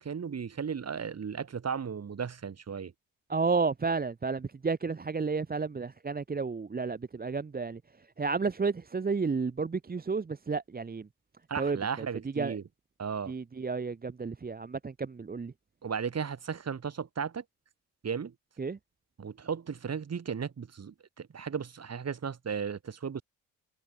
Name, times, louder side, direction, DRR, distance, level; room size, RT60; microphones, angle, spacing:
voice 1, 0.0-2.9 11.5-12.6 13.0-13.3 15.8-17.4 18.0-18.3 19.2-23.2, right 6 dB, 45° right, 5.2 m, -35 dB
voice 2, 3.3-11.1 11.6-12.6 13.3-15.5 18.6-18.8, right 4 dB, 25° right, 1.3 m, -32 dB
cardioid pair, 75°, 35 cm